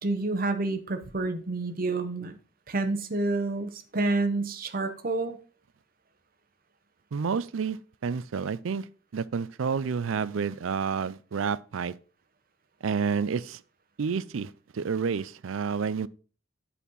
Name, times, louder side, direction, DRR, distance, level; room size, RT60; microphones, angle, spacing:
voice 1, 0.0-2.4 2.7-5.4, right 2 dB, 45° right, 1.0 m, -29 dB
voice 2, 7.1-8.9 9.1-11.9 12.8-13.6 14.0-16.1, right 6 dB, 80° right, 0.4 m, -29 dB
8.3 x 4.3 x 5.4 m
head